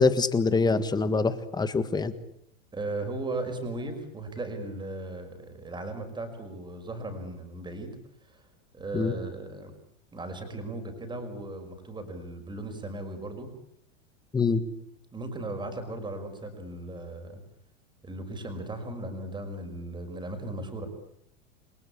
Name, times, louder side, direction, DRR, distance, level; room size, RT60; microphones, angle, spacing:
voice 1, 0.0-2.1 8.9-9.1 14.3-14.6, left 4 dB, 10° left, 12 dB, 1.6 m, -24 dB
voice 2, 2.7-8.5 8.7-9.7 10.1-13.5 15.1-17.4 18.0-20.9, right 2 dB, 10° right, 6 dB, 5.5 m, -37 dB
29.5 x 22.5 x 8.7 m, 0.75 s
supercardioid pair, 155°, 39 cm